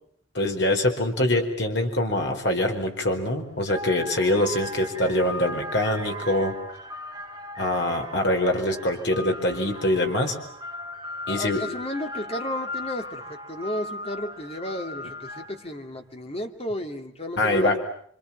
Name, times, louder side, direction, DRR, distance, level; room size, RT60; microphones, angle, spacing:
voice 1, 0.3-6.6 7.6-10.3 11.3-11.6 17.4-17.8, left 1 dB, 60° left, 3 dB, 4.7 m, -24 dB
sound 1, 3.1-3.2 3.6-15.7, left 1 dB, 20° right, 2.8 m, -37 dB
voice 2, 11.3-17.8, left 1 dB, 30° left, 5 dB, 2.7 m, -33 dB
29.0 x 26.0 x 7.3 m, 0.64 s
head